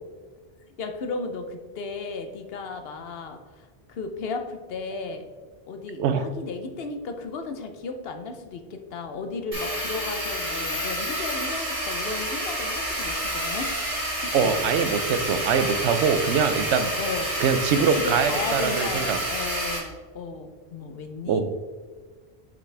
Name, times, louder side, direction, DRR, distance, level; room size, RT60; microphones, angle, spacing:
voice 1, 0.8-5.2 5.7-13.7 14.2-14.6 17.0-17.3 17.9-21.4, left 4 dB, 65° left, 6 dB, 0.9 m, -34 dB
sound 1, 9.5-19.8, equal, 45° right, 1.9 m, -29 dB
voice 2, 14.3-16.9 17.4-19.2 21.3-21.4, right 6 dB, 85° right, 10 dB, 0.9 m, -23 dB
6.3 x 5.8 x 3.3 m, 1.5 s
omnidirectional pair, 1.1 m